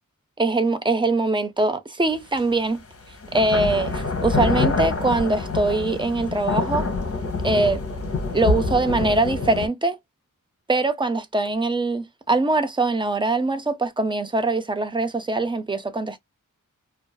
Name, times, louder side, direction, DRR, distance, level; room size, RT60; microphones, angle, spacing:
voice 1, 0.4-2.8 3.3-6.9 7.4-7.8 8.3-10.0 10.7-16.2, right 2 dB, 15° right, 0.5 m, -22 dB
sound 1, 2.4-2.5 3.2-9.7, left 3 dB, 45° left, 0.8 m, -26 dB
2.4 x 2.3 x 2.2 m
wide cardioid pair, 90°, 33 cm